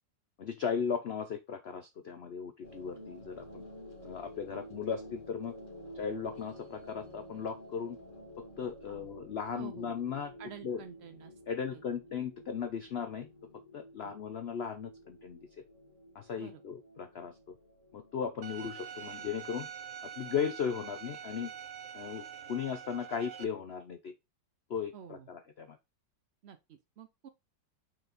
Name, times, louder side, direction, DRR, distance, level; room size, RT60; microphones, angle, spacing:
voice 1, 0.4-3.6 4.0-5.5 5.9-8.0 8.6-10.3 10.6-10.8 11.5-13.3 13.7-15.4 16.1-17.3 17.9-19.7 20.2-21.5 21.9-22.2 22.5-24.1 24.7-25.8, left 7 dB, 90° left, 0.5 m, -36 dB
sound 1, 2.6-19.0, equal, 45° left, 2.3 m, -51 dB
voice 2, 9.5-10.0 10.4-11.8 14.0-14.1 16.4-16.6 20.4-20.5 24.9-25.3 26.4-27.3, right 8 dB, 85° right, 0.5 m, -50 dB
Bowed string instrument, 18.4-23.4, right 8 dB, 60° right, 0.9 m, -45 dB
6.7 x 4.3 x 4.0 m
omnidirectional pair, 1.9 m